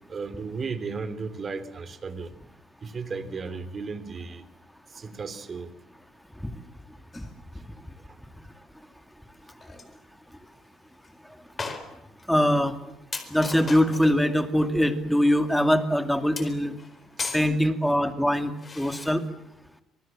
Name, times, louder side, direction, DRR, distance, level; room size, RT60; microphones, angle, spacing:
voice 1, 0.1-2.3 2.8-4.4 4.9-5.7 17.2-17.3 17.6-17.7, right 4 dB, 25° right, 12 dB, 3.0 m, -35 dB
sound 1, 7.1-7.3 9.3-9.4 9.6-9.9 10.5-10.6 11.0-11.1 11.6-12.3 12.7-12.8 13.1-14.2 16.4-17.5 18.6-19.1, left 4 dB, 20° left, 4.4 m, -37 dB
voice 2, 12.3-12.7 13.3-16.7 17.3-19.2, equal, ahead, 8 dB, 2.3 m, -23 dB
28.0 x 26.5 x 7.4 m, 0.86 s
cardioid pair, 170°, 0 cm